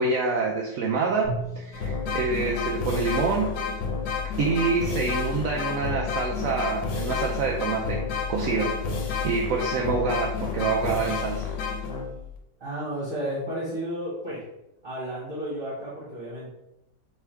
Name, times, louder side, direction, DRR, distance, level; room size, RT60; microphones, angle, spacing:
voice 1, 0.0-3.5 4.4-8.0 8.3-8.7 9.2-11.4, right 4 dB, 70° right, -1 dB, 0.8 m, -26 dB
Drum, 1.2-3.6, right 3 dB, 40° left, 1.7 m, -39 dB
sound 1, 1.7-12.4, left 5 dB, 85° left, 1.4 m, -30 dB
voice 2, 12.6-14.4 14.8-16.5, equal, 30° right, -10 dB, 1.8 m, -32 dB
3.4 x 3.4 x 4.4 m, 0.87 s
omnidirectional pair, 1.9 m